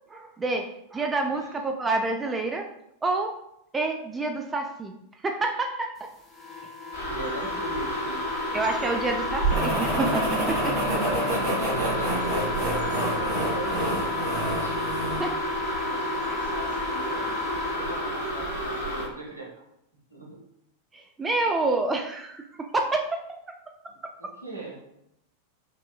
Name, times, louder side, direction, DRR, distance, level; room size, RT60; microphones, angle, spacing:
voice 1, 0.1-2.7 3.0-3.4 3.7-4.9 5.2-6.1 8.5-11.2 15.2-15.3 16.3-16.4 20.9-23.2, right 3 dB, 15° right, 4 dB, 0.4 m, -28 dB
voice 2, 1.3-1.6 7.0-8.9 11.1-12.4 12.7-14.3 14.6-14.9 15.8-17.4 17.8-19.5 20.1-20.4 23.9-24.8, right 2 dB, 80° right, -3 dB, 1.1 m, -39 dB
sound 1, 6.3-18.4, left 4 dB, 10° left, 0.7 m, -33 dB
sound 2, 6.9-19.0, right 1 dB, 70° left, 1.4 m, -31 dB
sound 3, 9.5-15.3, right 1 dB, 40° right, 1.4 m, -29 dB
5.4 x 2.6 x 2.2 m, 0.79 s
figure-of-eight pair, 90°, 0 cm